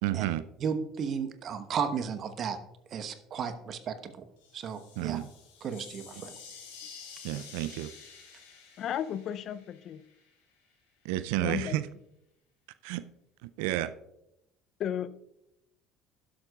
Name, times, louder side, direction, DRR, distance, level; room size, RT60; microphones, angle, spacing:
voice 1, 0.0-0.4 5.0-5.3 7.2-7.9 11.0-11.9 12.8-13.0 13.4-13.9, right 15 dB, 70° right, 15 dB, 0.4 m, -31 dB
voice 2, 0.6-2.6 2.9-4.1 4.5-5.2 5.6-6.3, right 6 dB, 50° right, 10 dB, 1.1 m, -34 dB
sound 1, 4.4-10.3, left 6 dB, 80° left, 2.9 m, -50 dB
voice 3, 8.8-10.0 11.4-11.7 14.8-15.1, left 9 dB, 55° left, 16 dB, 0.5 m, -34 dB
12.0 x 11.5 x 2.4 m, 0.85 s
hypercardioid pair, 65°, 0 cm